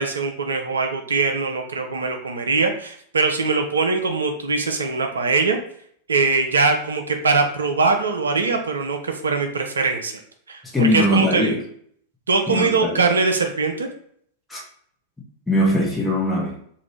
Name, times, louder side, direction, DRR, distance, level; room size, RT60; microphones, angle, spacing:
voice 1, 0.0-5.6 6.1-10.1 10.5-11.6 12.3-13.9, right 4 dB, 70° right, 4 dB, 0.4 m, -22 dB
voice 2, 10.7-11.6 12.5-13.0 14.5-14.6 15.5-16.5, left 1 dB, 10° left, -2 dB, 1.0 m, -20 dB
2.8 x 2.5 x 3.2 m, 0.63 s
figure-of-eight pair, 90°, 0 cm